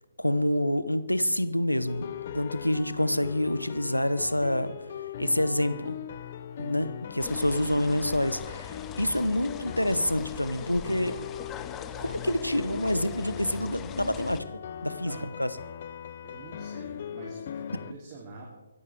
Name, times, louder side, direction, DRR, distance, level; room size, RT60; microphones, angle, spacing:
voice 1, 0.2-2.1 2.3-4.7 5.2-6.0 6.6-11.2 12.0-14.4 14.8-15.5, left 1 dB, 85° left, 13 dB, 1.2 m, -27 dB
sound 1, 1.9-17.9, left 8 dB, 40° left, 0.8 m, -39 dB
sound 2, 7.2-14.4, left 8 dB, 15° left, 0.9 m, -43 dB
voice 2, 7.3-7.8 12.4-13.0 14.8-15.3 16.2-18.4, right 3 dB, 25° right, -2 dB, 3.2 m, -46 dB
24.0 x 14.5 x 3.6 m, 1.1 s
figure-of-eight pair, 135°, 0 cm